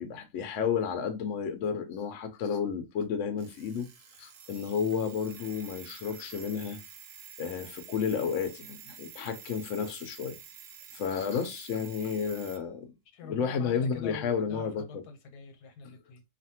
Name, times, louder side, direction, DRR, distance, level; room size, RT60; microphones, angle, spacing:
voice 1, 0.0-3.9 4.2-6.8 7.4-10.4 10.9-12.9 13.2-15.0, left 6 dB, 65° left, 0.8 m, -32 dB
Alarm, 3.4-12.6, right 7 dB, 65° right, 0.9 m, -49 dB
voice 2, 13.1-16.2, left 4 dB, 90° left, 1.3 m, -44 dB
2.6 x 2.5 x 2.7 m
omnidirectional pair, 1.7 m